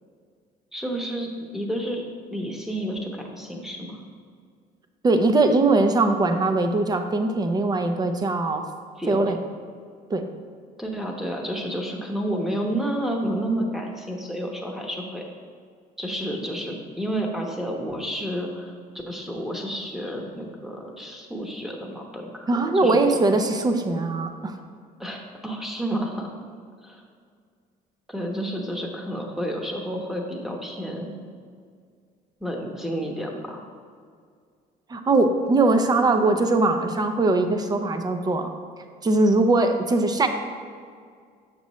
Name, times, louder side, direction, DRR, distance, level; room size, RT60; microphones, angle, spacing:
voice 1, 0.7-2.0 2.3-4.0 9.0-9.4 10.8-15.2 16.0-18.7 19.1-23.2 25.0-26.4 26.8-27.0 28.1-31.2 32.4-33.6, equal, ahead, 1 dB, 1.0 m, -30 dB
voice 2, 5.0-8.7 9.1-9.4 10.1-10.3 22.5-24.6 34.9-38.5 39.0-40.3, right 2 dB, 25° right, 7 dB, 0.6 m, -21 dB
6.8 x 6.4 x 3.1 m, 2.1 s
cardioid pair, 110°, 17 cm